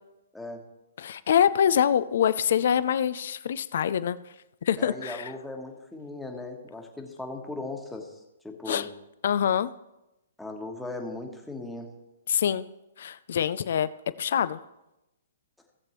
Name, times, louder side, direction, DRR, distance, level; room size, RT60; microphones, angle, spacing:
voice 1, 0.3-0.7 1.6-1.7 4.8-8.9 10.4-12.0, left 2 dB, 5° left, 2 dB, 1.3 m, -38 dB
voice 2, 1.0-4.2 4.7-5.2 8.7-8.9 9.2-9.7 12.3-12.6 13.0-13.9 14.2-14.6, left 9 dB, 60° left, 14 dB, 0.5 m, -25 dB
16.5 x 7.4 x 3.1 m, 0.92 s
hypercardioid pair, 130°, 0 cm